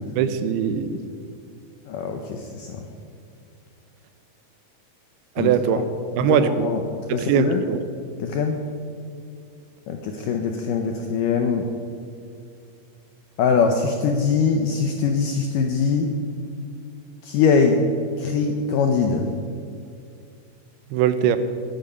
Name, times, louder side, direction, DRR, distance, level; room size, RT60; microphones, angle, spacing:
voice 1, 0.2-1.0 5.4-5.9 6.2-6.7 7.1-7.8 20.9-21.4, right 8 dB, 85° right, 11 dB, 2.7 m, -21 dB
voice 2, 1.9-2.9 5.4-5.5 6.2-7.6 8.2-8.6 9.9-11.7 13.4-16.1 17.2-17.8 18.2-19.3, left 5 dB, 75° left, 4 dB, 2.1 m, -22 dB
18.0 x 9.5 x 5.6 m, 2.4 s
omnidirectional pair, 4.5 m